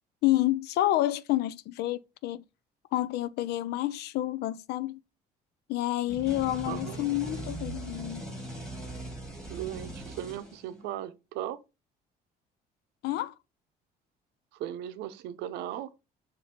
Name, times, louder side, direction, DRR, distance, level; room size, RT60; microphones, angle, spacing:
voice 1, 0.2-2.4 2.9-5.0 5.7-8.2 13.0-13.3, left 15 dB, 80° left, 0.5 m, -29 dB
sound 1, 6.1-11.0, right 1 dB, 5° left, 2.2 m, -40 dB
voice 2, 6.7-7.0 9.5-11.6 14.5-15.9, right 11 dB, 90° right, 0.7 m, -37 dB
6.8 x 2.7 x 5.1 m
cardioid pair, 110°, 17 cm